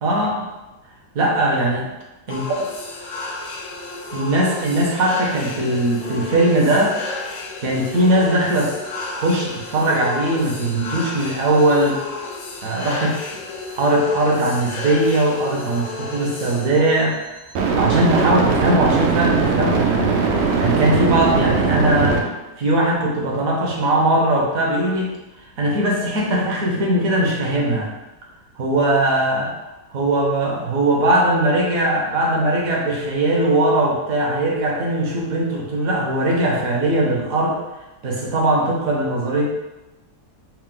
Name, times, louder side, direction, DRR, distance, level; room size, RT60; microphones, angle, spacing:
voice 1, 0.0-0.5 1.1-1.9 2.3-2.4 4.1-7.0 7.6-8.7 9.0-12.0 12.6-13.2 13.8-17.2 17.7-20.2 20.6-22.3 22.6-25.1 25.6-27.9 28.6-29.5 29.9-37.6 38.0-39.5, right 1 dB, 65° right, -2 dB, 1.1 m, -20 dB
sound 1, 2.3-16.9, left 3 dB, 70° left, 1.0 m, -32 dB
sound 2, 12.7-12.8 17.6-22.2, right 4 dB, 80° right, 0.6 m, -20 dB
4.6 x 2.0 x 3.6 m, 1.0 s
omnidirectional pair, 1.7 m